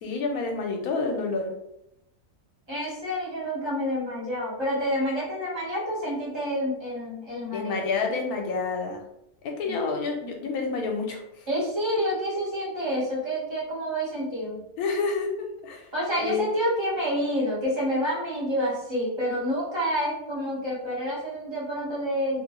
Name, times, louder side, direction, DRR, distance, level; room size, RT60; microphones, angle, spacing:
voice 1, 0.0-1.5 7.5-9.0 9.4-11.7 14.8-15.9 16.2-16.5, left 4 dB, 75° left, 2 dB, 1.1 m, -29 dB
voice 2, 2.7-7.9 9.6-9.7 11.5-14.6 15.9-22.4, equal, 20° right, -7 dB, 1.0 m, -28 dB
2.9 x 2.1 x 2.9 m, 0.81 s
omnidirectional pair, 1.6 m